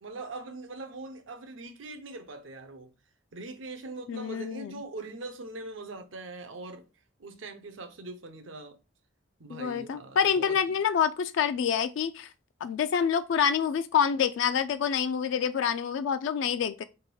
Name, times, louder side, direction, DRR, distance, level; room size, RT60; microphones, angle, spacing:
voice 1, 0.0-2.9 3.3-6.8 7.2-8.8 9.4-10.6, right 2 dB, 85° right, 0.8 m, -42 dB
voice 2, 4.1-4.8 9.5-12.3 12.6-16.8, left 7 dB, 75° left, 0.3 m, -27 dB
3.6 x 3.0 x 4.6 m
head